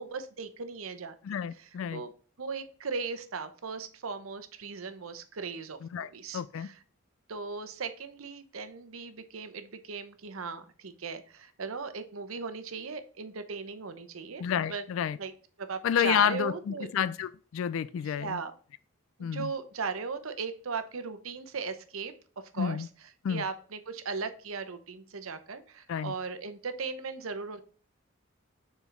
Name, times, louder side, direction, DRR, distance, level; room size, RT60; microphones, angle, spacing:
voice 1, 0.0-1.2 1.5-2.1 2.4-6.8 7.3-14.8 15.2-15.3 15.6-16.9 18.0-18.5 19.2-22.1 22.5-22.8 23.3-27.6, right 5 dB, 90° right, 0.8 m, -38 dB
voice 2, 1.2-2.0 5.8-6.7 14.4-15.2 15.8-18.4 19.2-19.5 22.6-22.9 23.2-23.4 25.9-26.1, left 8 dB, 75° left, 0.3 m, -30 dB
7.0 x 4.4 x 3.3 m
head